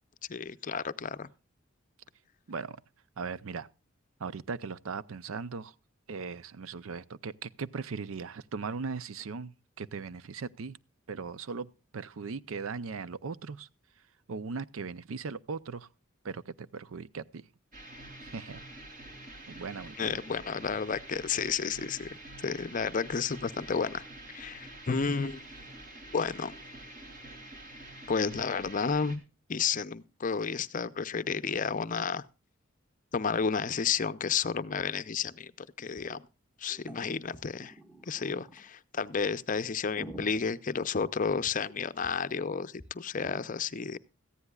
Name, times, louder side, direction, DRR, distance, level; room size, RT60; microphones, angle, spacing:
voice 1, 0.3-1.3 20.0-22.1 22.4-24.0 24.3-25.4 26.1-26.5 28.1-29.2 29.5-32.2 33.1-36.3 36.6-37.7 38.1-44.0, left 5 dB, 40° left, 0.6 m, -31 dB
voice 2, 2.5-2.8 3.2-3.7 4.2-5.7 6.1-10.8 11.1-13.7 14.0-15.9 16.2-17.5 18.2-18.6 19.5-20.2, right 5 dB, 80° right, 0.5 m, -39 dB
sound 1, 17.7-29.2, right 1 dB, 40° right, 2.9 m, -47 dB
sound 2, 34.8-34.9 35.1-35.2 35.8-36.2 36.7-38.7 39.2-39.3 39.7-41.7 42.0-42.1 42.4-42.5 42.8-42.9 43.2-43.4, right 1 dB, 10° right, 1.6 m, -49 dB
18.0 x 14.5 x 2.3 m
head